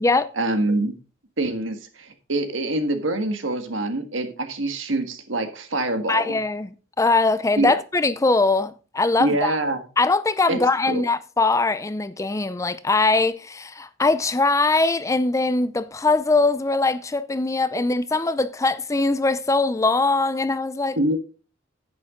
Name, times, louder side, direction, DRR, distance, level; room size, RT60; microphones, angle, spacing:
voice 1, 0.3-1.0 1.4-6.4 7.6-7.7 9.2-9.8 10.5-11.0 21.0-21.2, right 2 dB, 85° right, 1.6 m, -25 dB
voice 2, 6.1-6.7 7.0-9.5 10.0-21.0, left 3 dB, 15° left, 0.5 m, -21 dB
10.5 x 8.7 x 3.7 m
head